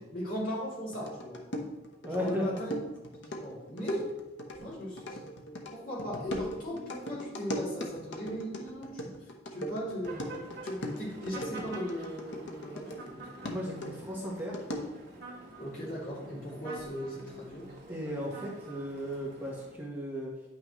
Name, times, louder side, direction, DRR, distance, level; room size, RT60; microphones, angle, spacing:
voice 1, 0.0-1.4 2.0-2.8 3.2-4.1 4.6-5.2 5.7-10.3 10.6-13.3 15.6-17.7, equal, 45° left, -6 dB, 2.7 m, -38 dB
sound 1, 0.9-13.1 13.4-15.1, equal, 70° left, 1.0 m, -39 dB
voice 2, 2.0-2.5 13.5-14.6 17.9-20.4, equal, 10° right, -5 dB, 1.1 m, -36 dB
sound 2, 10.0-19.7, right 2 dB, 55° right, 1.7 m, -48 dB
9.5 x 5.8 x 3.1 m, 1.1 s
head